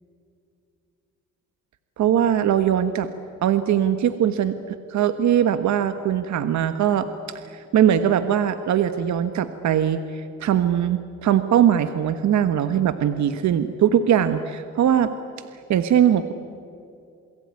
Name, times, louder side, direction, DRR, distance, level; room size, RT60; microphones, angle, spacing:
voice 1, 2.0-3.1 3.4-7.1 7.5-15.1 15.5-16.3, right 9 dB, 70° right, 10 dB, 1.4 m, -21 dB
28.5 x 21.5 x 9.7 m, 2.5 s
cardioid pair, 90°, 30 cm